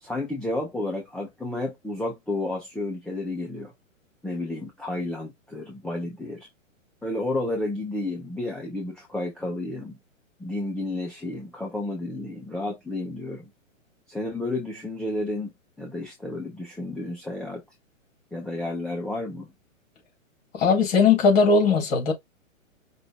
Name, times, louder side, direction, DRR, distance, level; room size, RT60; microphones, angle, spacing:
voice 1, 0.0-3.7 4.2-6.5 7.0-10.0 10.4-13.5 14.1-15.5 15.8-17.6 18.3-19.5, left 2 dB, ahead, 0.6 m, -31 dB
voice 2, 20.5-22.1, left 4 dB, 45° left, 3.5 m, -19 dB
5.4 x 2.6 x 3.5 m
hypercardioid pair, 125°, 40 cm